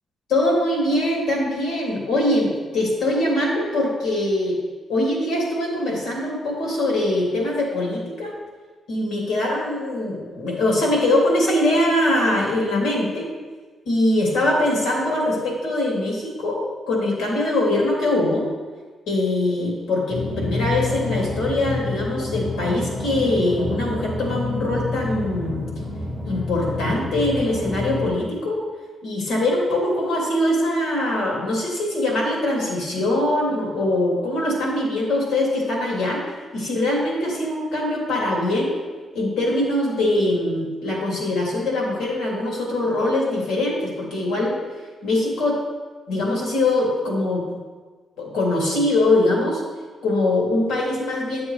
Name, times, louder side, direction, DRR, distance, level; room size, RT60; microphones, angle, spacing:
voice 1, 0.3-4.6 4.9-8.3 8.9-13.3 13.9-16.6 16.9-18.5 19.1-25.6 26.2-28.6 29.0-36.2 36.5-38.7 39.1-44.6 45.0-45.6 46.1-47.5 48.2-49.6 50.0-51.5, left 1 dB, 90° left, -3 dB, 2.8 m, -22 dB
sound 1, 20.1-28.1, left 2 dB, 20° left, 1.7 m, -28 dB
11.0 x 7.1 x 3.2 m, 1.4 s
cardioid pair, 125°, 0 cm